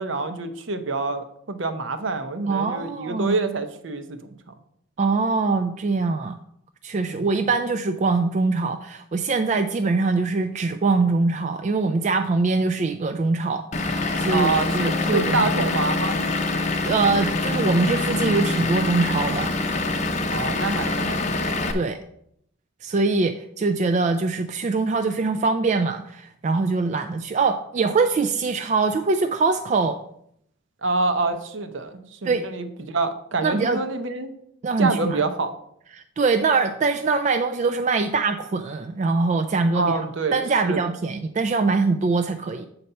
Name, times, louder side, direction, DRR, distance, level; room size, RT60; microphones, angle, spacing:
voice 1, 0.0-4.4 7.1-7.2 14.3-16.2 20.3-21.7 30.8-34.4 34.8-35.5 39.7-40.8, right 3 dB, 65° right, 9 dB, 0.7 m, -27 dB
voice 2, 2.5-3.4 5.0-6.4 6.8-15.5 16.5-19.5 21.7-22.0 22.8-30.0 32.2-32.5 33.4-33.8 34.6-35.2 35.9-40.0 40.3-42.7, right 4 dB, 35° right, 7 dB, 0.3 m, -23 dB
Vehicle / Engine, 13.7-21.7, left 3 dB, 35° left, 0.6 m, -25 dB
7.8 x 4.1 x 5.5 m, 0.72 s
head